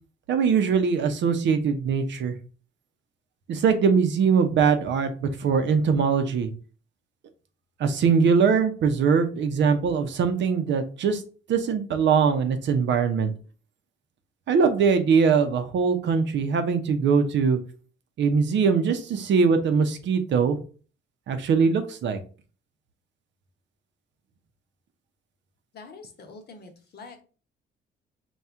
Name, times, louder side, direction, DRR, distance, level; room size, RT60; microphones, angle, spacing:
voice 1, 0.3-2.3 3.5-6.5 7.8-11.2 11.5-13.3 14.5-17.6 18.2-20.6 21.3-22.2, right 6 dB, 65° right, 8 dB, 0.7 m, -22 dB
voice 2, 25.7-27.2, left 4 dB, 55° left, 5 dB, 1.0 m, -45 dB
4.3 x 2.3 x 3.5 m, 0.38 s
cardioid pair, 90°, 20 cm